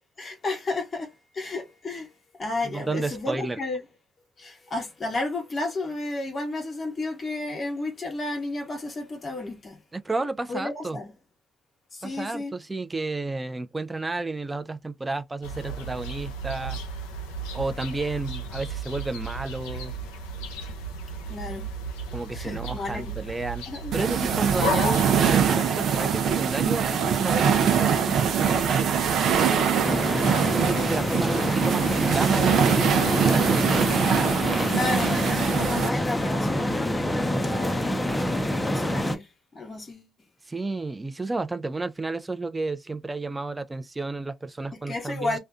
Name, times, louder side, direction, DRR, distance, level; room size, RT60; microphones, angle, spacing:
voice 1, 0.2-2.1 2.4-3.8 4.4-9.8 10.5-11.1 11.9-12.5 21.3-21.7 22.3-23.2 23.7-23.9 30.9-31.5 34.6-38.1 38.6-40.1 44.9-45.4, left 2 dB, 45° left, 0.8 m, -32 dB
voice 2, 2.6-3.6 9.9-11.0 12.0-16.8 17.5-19.9 22.1-23.6 23.9-28.9 30.4-32.9 33.2-33.8 35.3-35.5 40.5-45.3, right 3 dB, 25° right, 0.5 m, -31 dB
sound 1, 15.4-25.5, right 1 dB, 90° left, 0.5 m, -34 dB
sound 2, 23.9-35.9, right 7 dB, 70° right, 0.6 m, -23 dB
sound 3, 29.8-39.2, left 1 dB, 15° left, 0.7 m, -26 dB
2.4 x 2.2 x 2.4 m
hypercardioid pair, 50°, 0 cm